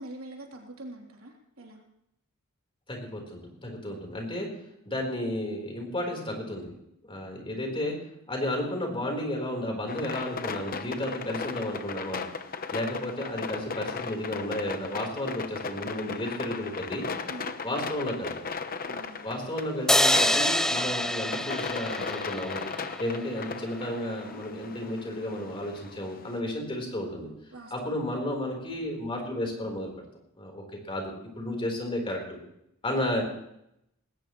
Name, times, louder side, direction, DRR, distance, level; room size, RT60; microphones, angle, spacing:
voice 1, 0.0-1.8 17.3-17.5 18.9-19.3 27.5-28.0, right 1 dB, 80° right, 0 dB, 3.4 m, -44 dB
voice 2, 2.9-4.5 4.9-6.7 7.0-8.0 8.3-12.2 12.7-17.1 17.6-18.4 19.2-22.6 23.0-27.3 27.7-29.9 30.3-32.4 32.8-33.2, left 1 dB, 25° left, 1 dB, 4.0 m, -32 dB
sound 1, 9.9-26.4, left 5 dB, 45° left, 0.9 m, -37 dB
sound 2, 19.9-23.2, left 1 dB, 5° left, 0.5 m, -26 dB
20.0 x 18.0 x 3.2 m, 0.80 s
head